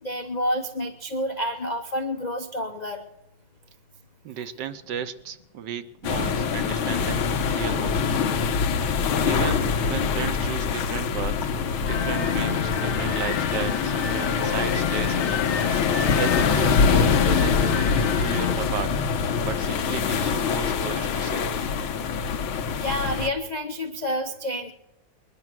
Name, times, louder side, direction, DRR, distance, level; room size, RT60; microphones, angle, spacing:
voice 1, 0.0-3.0 22.8-24.7, equal, 60° left, 5 dB, 0.4 m, -29 dB
voice 2, 4.2-8.2 9.2-11.5 11.8-15.5 16.1-17.8 18.2-19.0 19.4-21.6, right 8 dB, 65° right, 11 dB, 1.3 m, -34 dB
sound 1, 6.0-23.3, left 6 dB, 90° left, 1.8 m, -24 dB
sound 2, 11.9-18.5, left 7 dB, 45° left, 1.0 m, -30 dB
21.0 x 11.0 x 6.0 m, 0.96 s
omnidirectional pair, 2.2 m